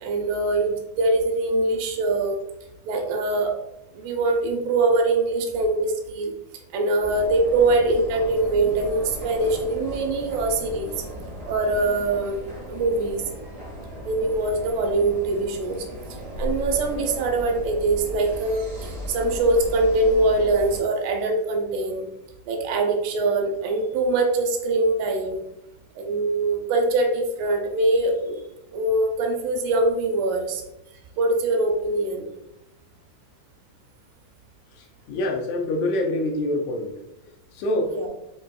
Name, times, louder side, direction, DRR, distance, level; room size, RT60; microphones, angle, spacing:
voice 1, 0.0-2.4 2.9-3.5 3.9-6.3 6.7-10.9 11.5-12.4 12.7-13.3 14.0-15.9 16.4-22.1 22.5-25.5 26.0-28.4 28.7-30.6 31.2-32.3 37.9-38.1, right 2 dB, 90° right, 3 dB, 2.1 m, -23 dB
sound 1, 7.0-20.8, equal, 50° right, 0.9 m, -36 dB
voice 2, 35.1-36.9 37.6-37.9, left 1 dB, 85° left, 1 dB, 2.1 m, -25 dB
5.3 x 2.6 x 2.3 m, 0.87 s
omnidirectional pair, 3.5 m